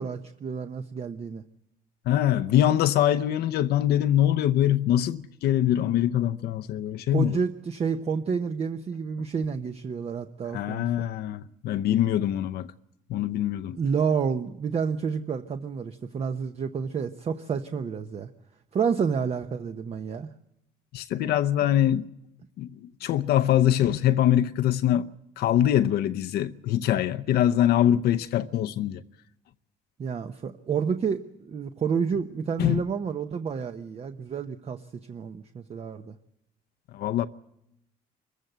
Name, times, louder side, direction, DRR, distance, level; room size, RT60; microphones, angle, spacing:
voice 1, 0.0-1.4 7.1-10.9 13.7-18.3 18.7-20.3 30.0-34.8 35.1-36.2, right 6 dB, 40° right, 0.9 m, -29 dB
voice 2, 2.1-7.4 10.5-12.7 13.1-13.8 20.9-22.0 22.6-22.7 23.0-25.1 25.4-29.0 32.6-32.8 36.9-37.3, left 11 dB, 70° left, 0.7 m, -23 dB
24.5 x 15.0 x 8.0 m
cardioid pair, 110°, 17 cm